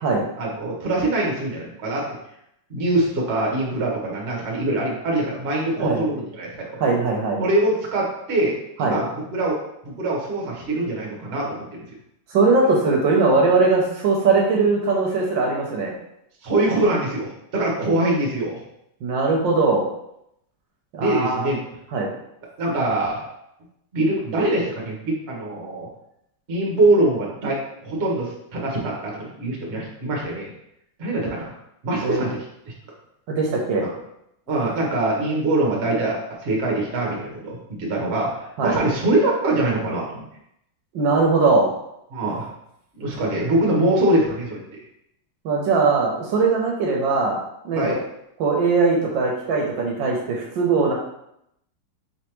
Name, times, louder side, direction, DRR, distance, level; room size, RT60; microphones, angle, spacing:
voice 1, 0.3-2.1 2.7-6.6 7.4-9.6 9.8-11.7 16.4-18.6 21.0-21.6 22.6-23.2 23.9-25.9 26.5-30.5 31.0-31.5 31.8-32.7 33.8-33.9 34.5-40.2 42.1-42.5 42.9-44.6 47.7-48.0, right 2 dB, 40° right, -2 dB, 1.1 m, -23 dB
voice 2, 6.8-7.4 8.8-9.0 12.3-15.9 19.0-19.8 20.9-21.5 21.9-22.1 32.0-32.3 33.3-33.9 38.6-38.8 40.9-41.7 45.4-47.4 47.6-48.0 48.4-50.9, right 3 dB, 75° right, -1 dB, 1.4 m, -20 dB
4.6 x 3.3 x 3.0 m, 0.78 s
omnidirectional pair, 2.2 m